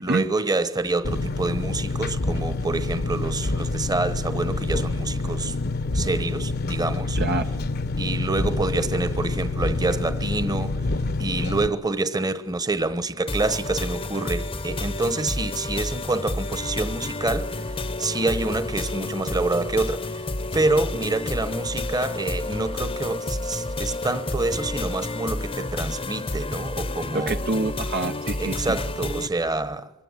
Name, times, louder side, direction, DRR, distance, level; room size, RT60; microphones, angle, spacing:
voice 1, 0.0-5.5 5.9-7.2 8.0-10.8 11.2-17.6 18.0-20.2 20.5-27.4 28.4-29.9, right 2 dB, 20° right, 1.2 m, -27 dB
Engine, 1.0-11.7, left 2 dB, 50° left, 1.0 m, -27 dB
voice 2, 7.2-7.5 27.1-28.8, right 3 dB, 50° right, 0.8 m, -27 dB
sound 1, 13.3-29.3, left 2 dB, 25° left, 1.0 m, -30 dB
24.0 x 20.0 x 9.8 m
head